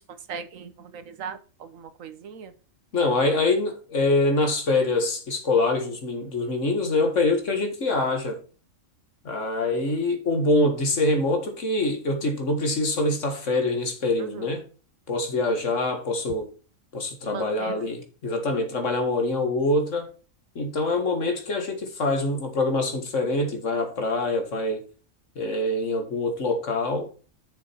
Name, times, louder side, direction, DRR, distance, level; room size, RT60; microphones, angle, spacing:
voice 1, 0.3-2.5 14.2-14.4 17.3-17.8, right 6 dB, 85° right, 1.4 m, -38 dB
voice 2, 2.9-8.4 9.2-14.7 15.1-16.5 16.9-20.1 20.6-24.8 25.4-27.1, left 2 dB, 70° left, 2.1 m, -25 dB
7.8 x 6.4 x 4.5 m
omnidirectional pair, 1.3 m